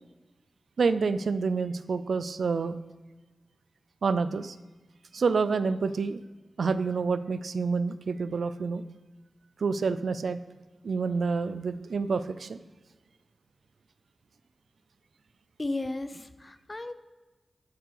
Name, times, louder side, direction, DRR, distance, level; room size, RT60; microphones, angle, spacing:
voice 1, 0.8-2.8 4.0-4.6 5.1-6.2 6.6-8.8 9.6-10.4 10.8-12.6, right 4 dB, 80° right, 13 dB, 0.5 m, -28 dB
voice 2, 15.6-16.9, left 2 dB, 30° left, 11 dB, 0.8 m, -34 dB
13.0 x 7.4 x 4.8 m, 1.2 s
wide cardioid pair, 85°, 0 cm